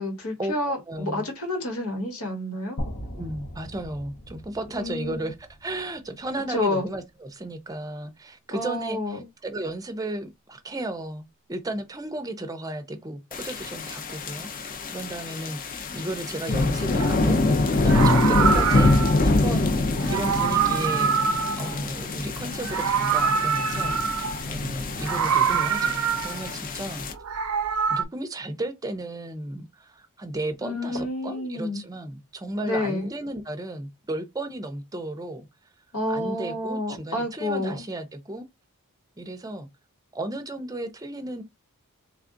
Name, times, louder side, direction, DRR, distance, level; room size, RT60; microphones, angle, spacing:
voice 1, 0.0-2.8 4.7-5.3 6.5-6.9 8.5-9.2 30.6-31.8 32.6-33.1 35.9-37.8, left 1 dB, 75° left, 1.5 m, -29 dB
voice 2, 0.9-1.3 3.1-18.9 19.2-19.8 20.0-27.1 27.9-35.5 36.1-38.4 39.2-39.7 40.1-41.4, right 1 dB, 15° right, 0.5 m, -34 dB
sound 1, 2.8-6.8, equal, 60° left, 0.9 m, -39 dB
sound 2, 13.3-27.1, left 2 dB, 40° left, 0.5 m, -25 dB
Meow, 17.0-17.2 17.8-19.3 20.0-22.2 22.5-24.4 25.0-26.5 27.1-28.0, right 7 dB, 70° right, 0.5 m, -25 dB
3.3 x 2.3 x 3.7 m
head